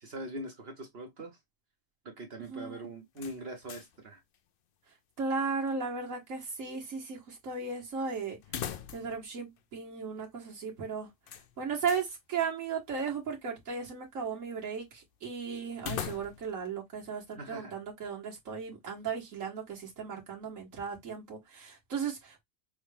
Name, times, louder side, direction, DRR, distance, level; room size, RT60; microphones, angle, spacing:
voice 1, 0.0-1.4 2.0-4.2 17.4-17.8, right 1 dB, 55° right, 1.2 m, -42 dB
voice 2, 2.4-2.9 5.2-8.4 8.9-11.1 11.6-22.4, right 5 dB, 85° right, 1.7 m, -36 dB
sound 1, 3.1-4.0 4.3-4.4 8.4-9.3 9.6-9.7 11.3-12.1 15.8-16.6, left 9 dB, 60° left, 0.6 m, -40 dB
6.2 x 2.3 x 3.2 m
omnidirectional pair, 1.3 m